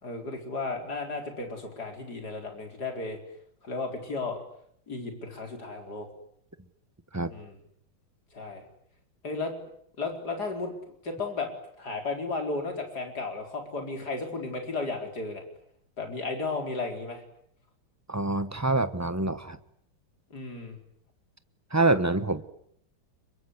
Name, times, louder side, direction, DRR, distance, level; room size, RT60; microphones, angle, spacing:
voice 1, 0.0-3.2 3.6-4.4 4.9-6.1 7.3-7.6 8.3-8.7 9.2-9.5 10.0-10.7 11.0-11.5 11.8-15.4 16.0-17.2 20.3-20.8, left 3 dB, 50° left, 4 dB, 5.2 m, -34 dB
voice 2, 18.1-19.6 21.7-22.4, right 2 dB, 15° right, 12 dB, 0.5 m, -26 dB
26.0 x 23.0 x 9.8 m, 0.70 s
omnidirectional pair, 2.3 m